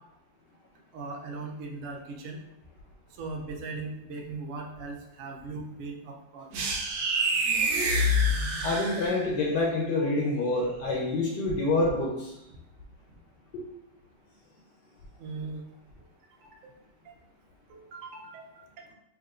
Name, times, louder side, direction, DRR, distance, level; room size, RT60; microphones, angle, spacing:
voice 1, 0.9-2.4 3.2-6.5 10.0-10.1 15.2-15.6 16.4-16.7 17.0-17.1 17.7-18.6, right 3 dB, 75° right, 1 dB, 0.7 m, -39 dB
sound 1, 6.5-9.4, equal, 90° right, 1.4 m, -26 dB
voice 2, 8.6-12.3 13.5-13.6, left 2 dB, 75° left, -1 dB, 1.2 m, -27 dB
4.7 x 2.6 x 2.4 m, 0.86 s
omnidirectional pair, 2.0 m